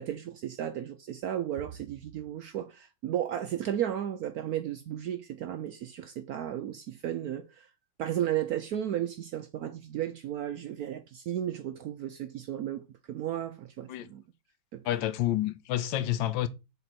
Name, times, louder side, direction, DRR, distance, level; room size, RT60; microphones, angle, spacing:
voice 1, 0.0-7.7 8.0-14.2 14.7-14.8, right 11 dB, 75° right, 0.8 m, -34 dB
voice 2, 14.8-16.5, left 13 dB, 80° left, 1.4 m, -29 dB
6.8 x 3.9 x 4.2 m
omnidirectional pair, 2.1 m